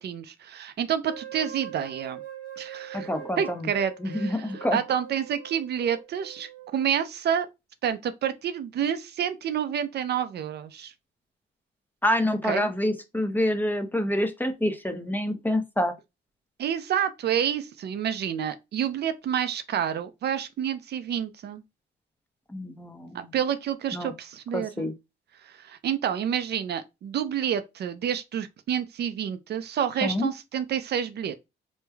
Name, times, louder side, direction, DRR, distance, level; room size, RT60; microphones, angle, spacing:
voice 1, 0.0-2.2 2.6-3.1 3.4-7.5 7.8-10.9 12.5-12.7 16.6-21.6 23.1-24.9 25.4-31.5, right 9 dB, 55° right, 0.4 m, -29 dB
sound 1, 1.0-7.1, right 10 dB, 70° right, 0.9 m, -42 dB
voice 2, 2.9-3.7 4.0-4.8 12.0-15.9 22.5-23.3 23.9-24.1 24.5-24.9 30.0-30.3, left 1 dB, 10° left, 0.6 m, -27 dB
3.1 x 2.1 x 3.3 m
cardioid pair, 90°, 20 cm